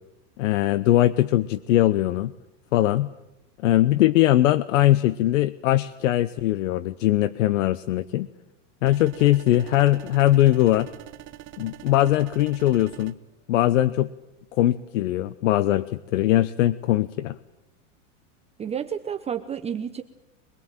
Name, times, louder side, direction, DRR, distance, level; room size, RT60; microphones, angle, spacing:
voice 1, 0.4-2.3 2.7-3.1 3.6-8.3 8.8-10.9 11.6-13.1 13.5-14.1 14.6-17.4, left 14 dB, 75° left, 17 dB, 0.9 m, -21 dB
sound 1, 8.9-13.1, right 14 dB, 35° right, 1.4 m, -43 dB
voice 2, 18.6-20.0, right 8 dB, 15° right, 7 dB, 0.9 m, -30 dB
24.5 x 21.0 x 9.0 m, 0.92 s
supercardioid pair, 135°, 38 cm